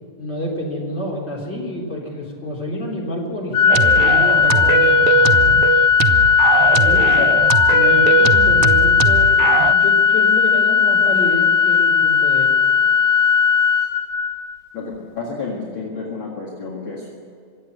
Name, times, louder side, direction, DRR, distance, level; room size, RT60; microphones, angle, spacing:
voice 1, 0.2-5.4 6.7-7.1 7.7-12.5, left 1 dB, 20° left, -3 dB, 3.6 m, -28 dB
Organ, 3.5-14.6, left 6 dB, 85° left, 2.9 m, -16 dB
sound 1, 3.7-9.7, right 10 dB, 80° right, 1.9 m, -20 dB
voice 2, 14.7-17.1, left 4 dB, 45° left, -3 dB, 2.6 m, -30 dB
24.5 x 8.4 x 6.7 m, 2.3 s
omnidirectional pair, 3.4 m